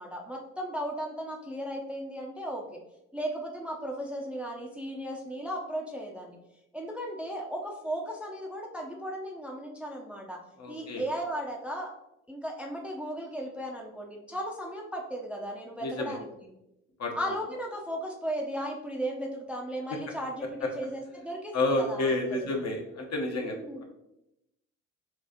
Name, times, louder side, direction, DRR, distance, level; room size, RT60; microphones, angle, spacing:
voice 1, 0.0-2.8 3.1-6.4 6.7-10.4 10.7-11.9 12.3-16.5 17.2-22.5 23.4-23.8, equal, 5° right, -1 dB, 0.7 m, -36 dB
voice 2, 10.6-11.0 15.8-16.2 17.0-17.1 20.6-20.7 21.5-23.6, left 2 dB, 45° left, 2 dB, 0.9 m, -29 dB
6.1 x 2.4 x 2.8 m, 0.90 s
hypercardioid pair, 55°, 38 cm